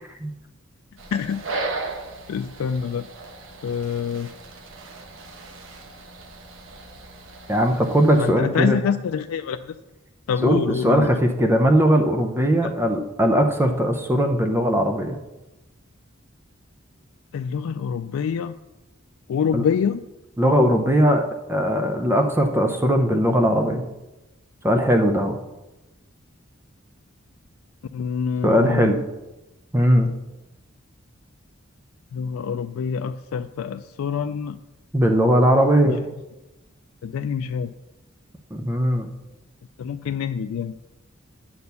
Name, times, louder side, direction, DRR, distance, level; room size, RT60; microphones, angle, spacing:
sound 1, 1.0-8.3, right 3 dB, 70° right, 1.1 m, -36 dB
voice 1, 1.1-1.8 2.3-3.1 3.6-4.3 8.1-9.8 10.3-11.1 12.6-12.7 17.3-18.6 19.3-20.0 27.9-28.9 32.1-34.6 35.8-36.1 37.0-37.7 39.8-40.8, left 7 dB, 90° left, 8 dB, 0.3 m, -26 dB
voice 2, 7.5-8.8 10.4-15.2 19.5-19.6 20.4-21.2 21.5-23.8 24.6-25.3 28.4-29.0 29.7-30.1 34.9-36.0 38.5-39.1, equal, 10° right, 4 dB, 0.6 m, -19 dB
9.5 x 4.3 x 6.8 m, 1.0 s
head